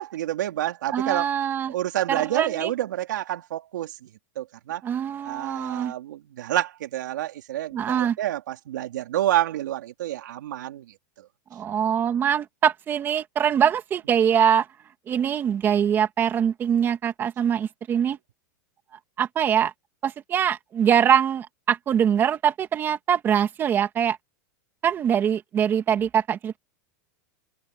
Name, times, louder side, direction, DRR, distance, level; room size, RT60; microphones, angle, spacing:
voice 1, 0.0-1.3 1.7-4.1 4.4-4.8 5.2-10.9 11.2-11.3, right 13 dB, 85° right, 3.5 m, -28 dB
voice 2, 0.9-1.7 2.1-2.7 4.8-5.9 7.7-8.2 11.5-14.7 15.1-18.2 19.2-19.7 20.0-24.2 24.8-26.6, right 8 dB, 20° right, 2.5 m, -23 dB
supercardioid pair, 160°, 10 cm